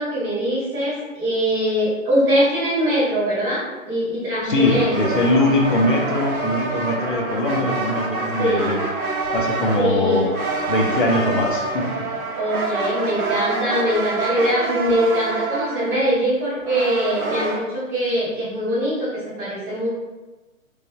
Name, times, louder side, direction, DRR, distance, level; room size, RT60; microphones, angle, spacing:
voice 1, 0.0-5.2 7.5-7.6 8.4-8.8 9.7-10.3 12.4-19.9, equal, 5° right, -12 dB, 0.6 m, -22 dB
voice 2, 4.4-8.8 9.3-10.3 10.7-12.1, left 2 dB, 40° left, 0 dB, 0.5 m, -21 dB
sound 1, 4.5-17.6, right 3 dB, 85° right, 0.7 m, -27 dB
3.1 x 2.6 x 2.6 m, 1.2 s
figure-of-eight pair, 135°, 42 cm